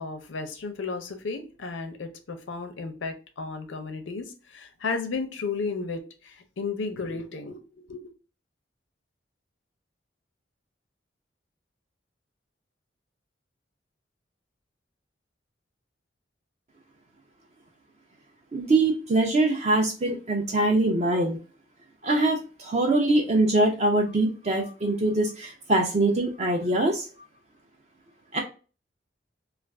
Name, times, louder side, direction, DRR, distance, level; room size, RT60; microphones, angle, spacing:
voice 1, 0.0-8.0, left 4 dB, 90° left, 7 dB, 0.6 m, -34 dB
voice 2, 18.5-21.4 22.0-27.1 28.3-28.4, right 2 dB, 35° right, 2 dB, 0.4 m, -23 dB
2.4 x 2.3 x 3.3 m, 0.35 s
head